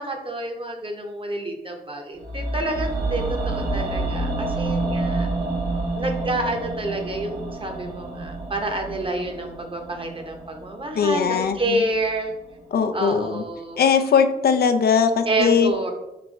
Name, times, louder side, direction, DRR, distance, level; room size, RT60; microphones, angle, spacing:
voice 1, 0.0-5.3 6.0-12.3 12.9-13.8 15.3-15.9, right 2 dB, 35° right, 3 dB, 0.8 m, -28 dB
sound 1, 2.2-12.3 12.6-12.7, right 2 dB, 90° right, 0.7 m, -29 dB
voice 2, 10.9-11.8 12.7-13.4 13.8-15.7, left 6 dB, 75° left, 7 dB, 0.4 m, -20 dB
3.4 x 3.0 x 3.9 m, 0.97 s
cardioid pair, 55°, 16 cm